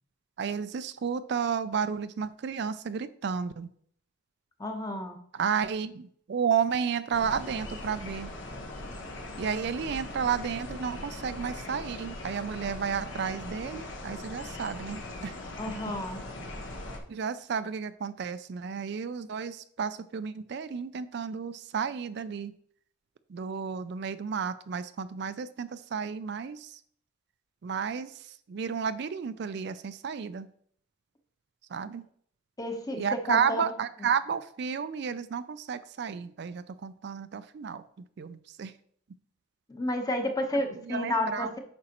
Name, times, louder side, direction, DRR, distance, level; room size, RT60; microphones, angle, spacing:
voice 1, 0.4-3.7 5.3-8.3 9.4-15.4 16.5-16.6 17.1-22.5 23.3-26.8 27.6-30.5 31.7-32.0 33.0-37.8 38.2-38.7 40.8-41.6, right 6 dB, 55° right, 13 dB, 0.4 m, -32 dB
voice 2, 4.6-5.2 15.6-16.2 32.6-33.7 39.7-41.6, left 1 dB, 20° left, 5 dB, 0.9 m, -31 dB
sound 1, 7.1-17.0, left 2 dB, 70° left, 1.2 m, -40 dB
8.7 x 6.0 x 2.9 m, 0.62 s
head